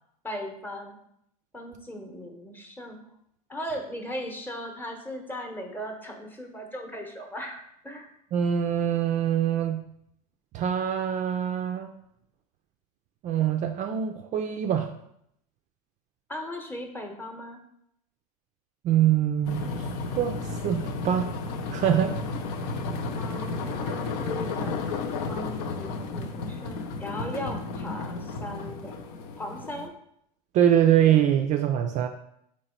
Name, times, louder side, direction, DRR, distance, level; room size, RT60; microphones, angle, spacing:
voice 1, 0.2-1.0 1.5-3.0 3.5-7.6 7.8-8.1 16.3-17.6 23.1-24.9 25.3-29.0 29.4-29.9, equal, 10° left, 3 dB, 0.9 m, -38 dB
voice 2, 8.3-9.8 10.5-11.9 13.2-14.9 18.8-19.7 20.2-21.3 21.7-22.2 30.5-32.1, right 10 dB, 40° right, 6 dB, 0.4 m, -24 dB
sound 1, 19.4-29.9, left 3 dB, 65° left, 0.6 m, -33 dB
4.0 x 3.1 x 4.3 m, 0.75 s
hypercardioid pair, 90°, 19 cm